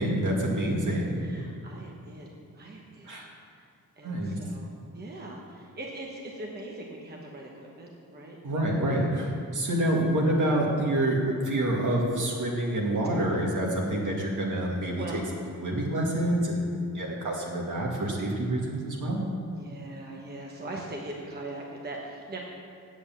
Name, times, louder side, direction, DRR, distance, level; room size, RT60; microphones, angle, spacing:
voice 1, 0.0-1.2 3.1-3.3 4.0-4.4 8.4-15.2 15.6-16.7 16.9-19.2, right 1 dB, 65° right, -2 dB, 2.2 m, -27 dB
voice 2, 1.2-3.2 3.6-3.7 4.0-4.7 4.9-8.6 9.6-9.8 13.2-13.3 14.9-15.2 19.5-22.4, right 2 dB, 30° right, -1 dB, 1.1 m, -41 dB
8.4 x 7.9 x 7.5 m, 2.4 s
wide cardioid pair, 145°, 33 cm